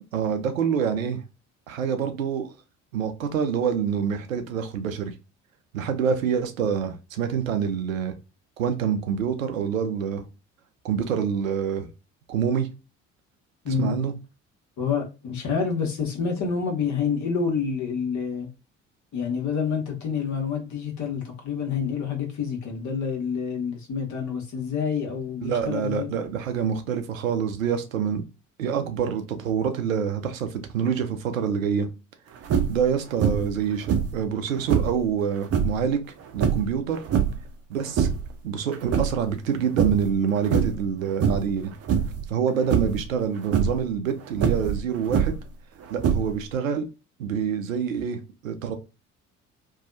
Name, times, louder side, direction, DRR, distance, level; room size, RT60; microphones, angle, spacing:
voice 1, 0.1-1.2 1.7-2.5 2.9-5.1 5.7-8.1 8.6-10.2 10.8-11.9 12.3-12.7 13.7-14.1 25.4-28.2 28.6-31.9 32.7-36.0 36.3-37.0 37.7-38.1 38.4-41.7 42.3-45.3 45.9-46.9 47.2-48.7, right 7 dB, 85° right, 0.5 m, -26 dB
voice 2, 13.6-14.0 14.8-18.5 19.1-26.1, left 6 dB, 45° left, 1.2 m, -28 dB
sound 1, 32.4-32.9 33.2-33.6 33.9-35.0 35.4-35.8 36.4-37.5 37.8-38.3 38.7-39.5 39.8-40.1 40.4-40.9 41.2-41.6 41.9-42.2 42.7-43.1 43.4-43.8 44.4-45.5 46.0-46.5, right 7 dB, 40° right, 0.6 m, -24 dB
2.7 x 2.3 x 2.5 m
figure-of-eight pair, 55°, 39 cm